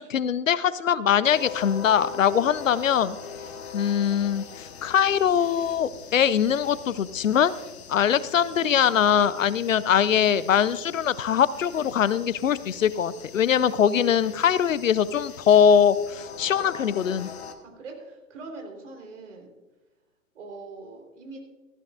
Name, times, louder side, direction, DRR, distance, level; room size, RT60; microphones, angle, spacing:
voice 1, 0.0-3.2 3.7-7.5 7.9-17.3, left 8 dB, 65° left, 18 dB, 0.6 m, -22 dB
sound 1, 1.2-17.5, left 7 dB, 50° left, 1.4 m, -42 dB
voice 2, 17.6-19.5 20.4-21.4, right 3 dB, 55° right, 2 dB, 3.8 m, -42 dB
18.0 x 14.5 x 2.5 m, 1.2 s
figure-of-eight pair, 115°, 42 cm